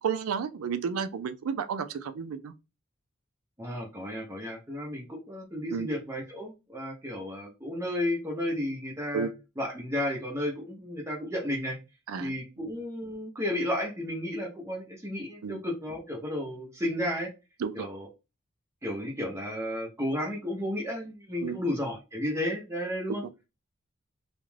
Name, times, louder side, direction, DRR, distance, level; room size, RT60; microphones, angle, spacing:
voice 1, 0.0-2.5 5.7-5.9 9.1-9.3 12.1-12.3 15.4-15.6 17.6-17.9 21.4-21.6 23.1-23.2, right 6 dB, 80° right, 0.4 m, -32 dB
voice 2, 3.6-9.3 9.6-11.8 12.2-17.3 17.7-18.1 18.8-23.2, left 1 dB, 15° right, 0.6 m, -33 dB
2.4 x 2.2 x 3.1 m
head